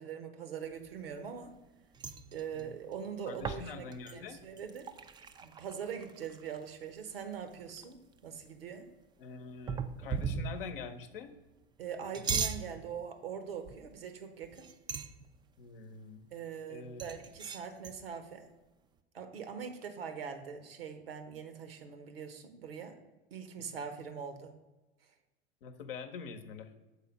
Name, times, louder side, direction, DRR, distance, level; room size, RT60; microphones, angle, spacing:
voice 1, 0.0-1.5 2.3-4.9 5.4-8.0 8.2-8.9 11.8-14.7 16.3-18.4 19.1-23.0 23.3-24.5, right 7 dB, 75° right, 8 dB, 0.9 m, -42 dB
sound 1, 0.8-1.7 1.9-6.8 7.2-7.3 7.5-8.2 9.7-10.8 11.9-12.7 13.7-14.0 14.4-15.3 17.0-18.0, right 6 dB, 15° right, 0.3 m, -38 dB
voice 2, 3.3-4.4 9.2-11.3 15.6-16.3 16.7-17.0 25.6-26.7, left 5 dB, 70° left, 8 dB, 0.8 m, -45 dB
6.7 x 4.1 x 5.2 m, 1.1 s
figure-of-eight pair, 80°, 30 cm